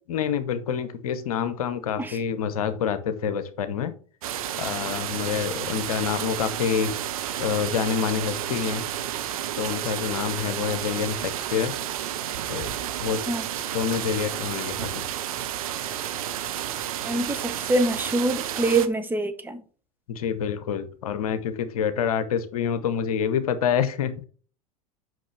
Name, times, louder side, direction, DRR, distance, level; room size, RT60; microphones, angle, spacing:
voice 1, 0.1-3.9 4.6-6.9 7.4-8.8 9.6-11.7 12.5-12.7 13.0-13.2 13.7-15.0 20.1-24.2, left 8 dB, 65° left, 11 dB, 1.0 m, -27 dB
sound 1, 4.2-18.9, right 11 dB, 65° right, 0.9 m, -31 dB
voice 2, 17.0-19.6, right 2 dB, 10° right, 7 dB, 1.2 m, -25 dB
7.6 x 5.9 x 3.4 m, 0.40 s
figure-of-eight pair, 80°, 20 cm